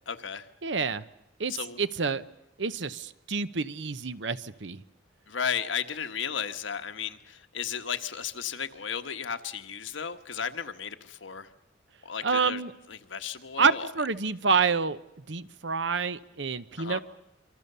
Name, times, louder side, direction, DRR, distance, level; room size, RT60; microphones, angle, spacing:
voice 1, 0.1-0.5 1.5-1.8 5.3-11.5 12.0-12.6 12.9-13.9 16.8-17.0, left 7 dB, 85° left, 8 dB, 1.4 m, -34 dB
voice 2, 0.6-1.0 1.4-2.2 2.6-4.8 12.2-12.7 13.6-15.0 15.3-17.0, right 5 dB, 70° right, 14 dB, 0.9 m, -28 dB
26.5 x 24.5 x 6.8 m, 0.83 s
head